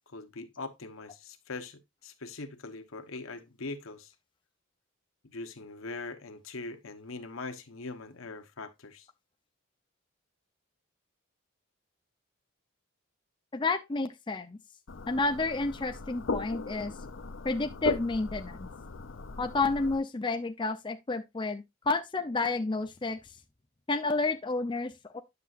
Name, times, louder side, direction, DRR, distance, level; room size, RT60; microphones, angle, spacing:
voice 1, 0.1-4.1 5.3-9.1, left 3 dB, 80° left, 1.1 m, -42 dB
voice 2, 13.5-14.6 15.1-16.9 17.4-18.7 19.4-23.2 23.9-25.2, left 3 dB, 25° left, 0.5 m, -30 dB
sound 1, 14.9-20.0, left 3 dB, 65° left, 0.6 m, -38 dB
9.5 x 6.8 x 2.5 m
head